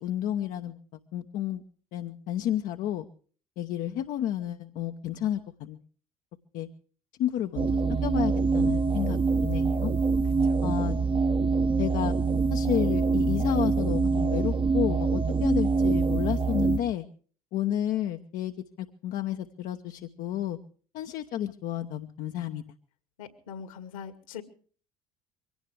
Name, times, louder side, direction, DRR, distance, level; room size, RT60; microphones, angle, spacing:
voice 1, 0.0-0.8 1.1-1.6 1.9-3.1 3.6-5.8 6.5-6.7 7.2-9.9 10.6-11.0 11.8-12.1 12.5-17.1 17.5-20.6 20.9-22.6, left 11 dB, 50° left, 6 dB, 1.0 m, -31 dB
sound 1, 7.6-16.8, right 4 dB, 30° right, 1.0 m, -25 dB
voice 2, 23.2-24.4, left 7 dB, 70° left, 9 dB, 2.2 m, -42 dB
23.5 x 17.5 x 3.3 m, 0.43 s
figure-of-eight pair, 60°, 18 cm